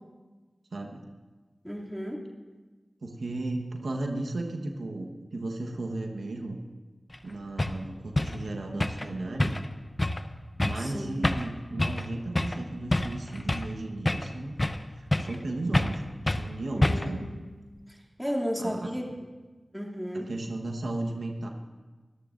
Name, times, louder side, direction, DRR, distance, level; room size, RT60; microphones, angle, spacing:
voice 1, 0.7-1.0 3.0-6.6 7.2-9.6 10.6-14.5 14.9-17.3 18.6-18.9 20.1-21.5, right 2 dB, 90° right, 2 dB, 1.2 m, -35 dB
voice 2, 1.6-2.2 10.8-11.2 16.7-17.4 17.9-19.1 19.7-20.3, equal, ahead, -1 dB, 2.6 m, -34 dB
sound 1, 7.1-7.2 7.6-7.8 8.2-8.4 8.8-9.1 9.4-9.7 10.0-10.2 10.6-10.9 11.2-11.5 11.8-12.1 12.4-12.6 12.9-13.7 14.1-14.8 15.1-15.4 15.7-16.0 16.3-16.5 16.8-17.2, left 1 dB, 35° left, 0.7 m, -27 dB
24.0 x 13.5 x 2.6 m, 1.3 s
cardioid pair, 40°, 0 cm